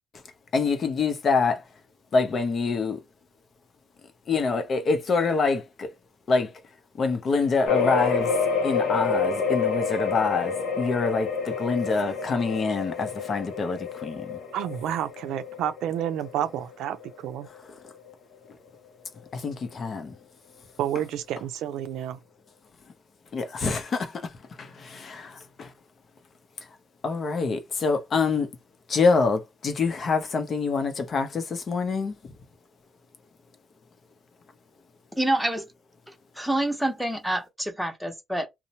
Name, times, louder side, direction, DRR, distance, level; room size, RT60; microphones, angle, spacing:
voice 1, 0.5-1.6 2.1-3.0 4.3-5.9 6.3-6.5 7.0-8.3 8.6-14.4 19.3-20.1 23.3-24.3 24.6-25.7 27.0-28.5 28.9-32.1, left 4 dB, 50° left, 0.7 m, -26 dB
sound 1, 7.6-17.1 17.6-17.7 18.1-18.2, left 5 dB, 85° left, 0.6 m, -28 dB
voice 2, 14.5-17.5 20.8-22.2, right 10 dB, 90° right, 0.5 m, -30 dB
voice 3, 35.2-35.7 36.4-38.5, right 1 dB, ahead, 0.8 m, -27 dB
2.7 x 2.1 x 2.9 m
cardioid pair, 90°, 0 cm